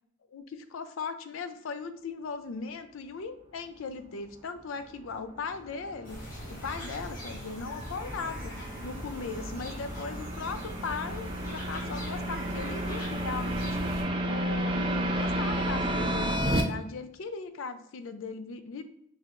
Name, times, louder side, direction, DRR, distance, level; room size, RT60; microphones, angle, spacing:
voice 1, 0.3-6.2 6.5-13.7 14.2-18.8, left 4 dB, 80° left, 10 dB, 0.4 m, -38 dB
sound 1, 5.1-16.6, right 1 dB, 25° right, 0.4 m, -32 dB
sound 2, 6.0-14.0, equal, 45° left, 1.2 m, -41 dB
4.5 x 3.1 x 2.5 m, 0.74 s
head